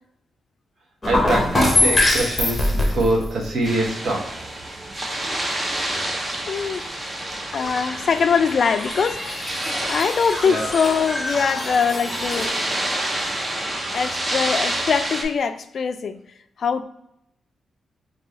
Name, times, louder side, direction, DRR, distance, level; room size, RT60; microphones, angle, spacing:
sound 1, 1.0-3.8 8.6-12.6 12.9-13.0, left 1 dB, 20° left, 0.7 m, -24 dB
voice 1, 1.1-4.3 10.5-10.7, right 2 dB, 60° right, -2 dB, 1.0 m, -24 dB
sound 2, 3.6-15.2, right 1 dB, 25° right, 0.6 m, -28 dB
voice 2, 6.5-6.9 7.5-12.5 13.9-16.2 16.6-16.8, left 6 dB, 55° left, 9 dB, 0.3 m, -22 dB
3.1 x 2.7 x 3.8 m, 0.78 s
cardioid pair, 100°, 0 cm